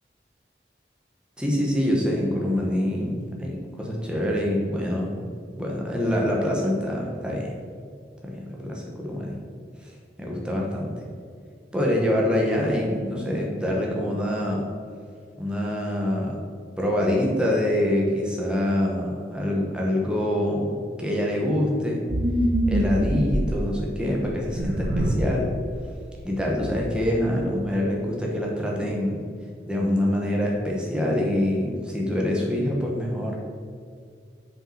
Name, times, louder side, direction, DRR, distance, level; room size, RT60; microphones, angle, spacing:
voice 1, 1.4-5.3 5.5-7.6 8.2-9.3 9.8-9.9 10.2-10.9 11.7-14.6 15.4-16.4 16.8-22.1 22.6-25.5 26.2-29.2 29.7-33.4, left 1 dB, 5° right, -2 dB, 1.3 m, -25 dB
sound 1, 22.1-23.6 24.3-25.3 25.7-25.8 26.3-27.1, right 1 dB, 85° right, 1.1 m, -25 dB
6.3 x 5.2 x 5.8 m, 2.2 s
head